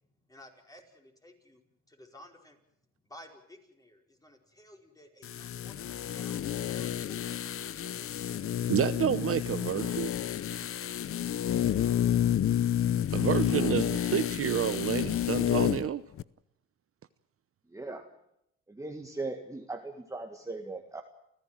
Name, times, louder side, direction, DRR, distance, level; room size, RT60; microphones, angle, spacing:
voice 1, 0.1-2.6 3.0-7.9, left 1 dB, 10° left, 5.1 m, -55 dB
sound 1, 5.2-15.9 16.2-16.3, left 10 dB, 45° left, 0.7 m, -30 dB
voice 2, 8.7-10.1 13.1-16.0, right 10 dB, 50° right, 0.9 m, -29 dB
voice 3, 17.7-18.1 18.7-21.0, right 3 dB, 10° right, 1.8 m, -39 dB
29.0 x 15.0 x 7.7 m
cardioid pair, 105°, 30 cm